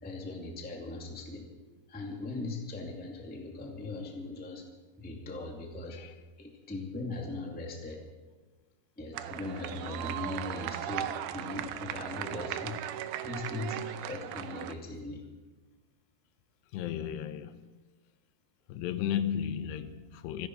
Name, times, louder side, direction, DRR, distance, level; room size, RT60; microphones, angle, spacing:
voice 1, 0.0-1.4 1.9-4.6 5.0-6.0 6.4-8.0 9.0-12.8 13.2-15.2, left 2 dB, 5° left, 0.9 m, -39 dB
sound 1, 9.1-14.7, right 12 dB, 80° right, 2.6 m, -37 dB
voice 2, 16.7-17.6 18.7-20.5, left 9 dB, 90° left, 3.0 m, -34 dB
27.5 x 10.5 x 4.7 m
omnidirectional pair, 4.7 m